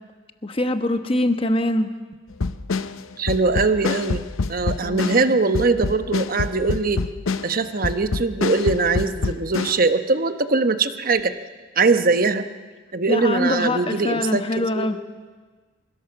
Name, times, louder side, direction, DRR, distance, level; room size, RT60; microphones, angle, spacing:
voice 1, 0.4-1.9 4.8-5.4 13.1-15.0, left 1 dB, 25° left, 8 dB, 1.2 m, -23 dB
sound 1, 2.3-9.8, left 3 dB, 85° left, 0.7 m, -26 dB
voice 2, 3.2-7.0 7.4-11.3 11.8-12.5 12.9-14.4 14.7-14.9, right 3 dB, 45° right, 10 dB, 1.0 m, -21 dB
25.0 x 16.5 x 7.2 m, 1.4 s
head